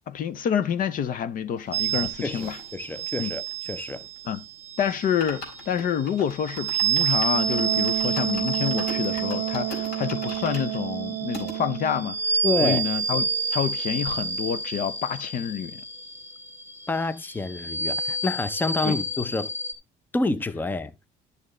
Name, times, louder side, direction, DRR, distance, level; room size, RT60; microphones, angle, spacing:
voice 1, 0.1-2.6 3.2-3.3 4.2-4.4 4.8-15.8 18.8-19.0, left 8 dB, 55° left, 0.6 m, -28 dB
sound 1, 1.6-4.4 4.7-4.8 5.0-11.6 12.1-12.2 12.4-12.5 12.8-13.8 14.1-14.2, left 1 dB, 70° left, 3.9 m, -42 dB
sound 2, 1.7-19.7, right 5 dB, 15° right, 1.0 m, -30 dB
voice 2, 1.9-4.1 12.4-12.8 16.9-19.5 20.1-20.9, left 2 dB, 10° left, 0.6 m, -28 dB
Wind instrument woodwind instrument, 7.3-12.2, right 15 dB, 65° right, 0.6 m, -30 dB
11.0 x 6.7 x 3.1 m
cardioid pair, 110°, 17 cm